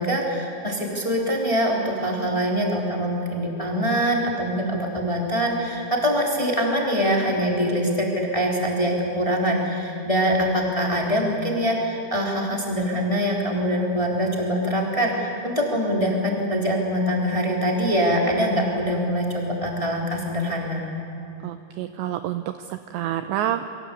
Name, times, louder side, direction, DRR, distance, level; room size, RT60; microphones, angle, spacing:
voice 1, 0.0-20.8, equal, 10° left, -1 dB, 2.6 m, -24 dB
voice 2, 21.4-23.7, right 12 dB, 80° right, 9 dB, 2.6 m, -28 dB
29.0 x 23.0 x 8.4 m, 2.9 s
omnidirectional pair, 5.8 m